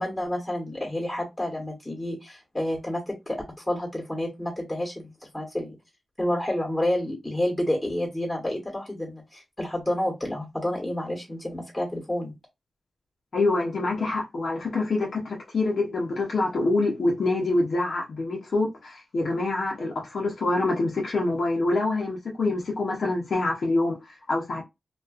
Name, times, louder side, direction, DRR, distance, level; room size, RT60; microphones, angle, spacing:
voice 1, 0.0-5.8 6.2-12.3, left 1 dB, 10° left, 1.1 m, -29 dB
voice 2, 13.3-24.6, left 2 dB, 65° left, 0.6 m, -26 dB
2.4 x 2.2 x 2.3 m
cardioid pair, 65°, 0 cm